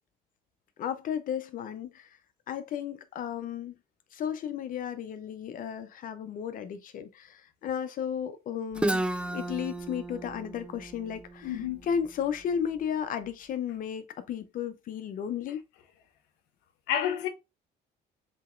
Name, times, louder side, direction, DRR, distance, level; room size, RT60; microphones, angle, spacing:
voice 1, 0.8-2.2 2.5-3.7 4.1-9.1 9.3-15.6, left 8 dB, 55° left, 0.6 m, -34 dB
Guitar, 8.7-12.5, right 1 dB, 5° right, 0.4 m, -33 dB
voice 2, 11.4-11.8 16.9-17.3, left 10 dB, 85° left, 0.9 m, -29 dB
6.2 x 2.9 x 2.4 m
cardioid pair, 110°, 17 cm